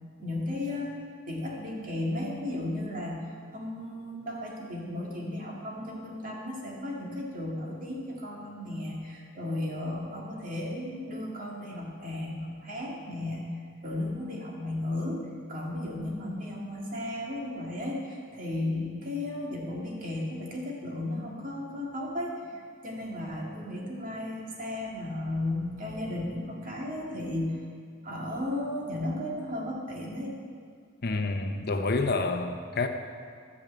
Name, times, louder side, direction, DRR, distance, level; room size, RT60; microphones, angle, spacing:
voice 1, 0.2-3.2 3.5-13.5 13.8-27.6 28.0-30.3, left 1 dB, 45° right, -3 dB, 2.1 m, -34 dB
voice 2, 31.0-32.9, left 3 dB, 50° left, 6 dB, 0.7 m, -28 dB
12.5 x 5.3 x 8.3 m, 2.1 s
head